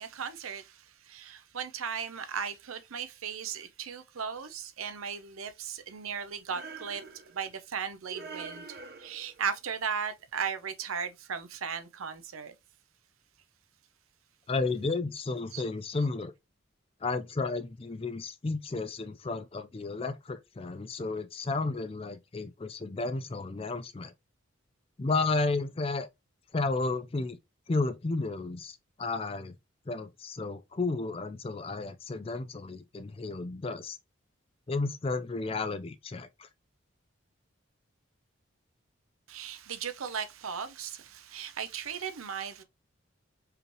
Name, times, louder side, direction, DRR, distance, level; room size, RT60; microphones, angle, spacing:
voice 1, 0.0-7.0 7.3-12.5 15.5-15.6 39.3-42.6, right 7 dB, 90° right, 0.7 m, -37 dB
sound 1, 6.5-7.5 8.1-9.5, right 4 dB, 50° right, 0.7 m, -45 dB
voice 2, 14.5-16.3 17.0-24.1 25.0-26.1 26.5-27.4 27.7-29.6 29.9-34.0 34.7-36.5, left 3 dB, 25° left, 0.4 m, -32 dB
4.8 x 3.2 x 3.0 m
head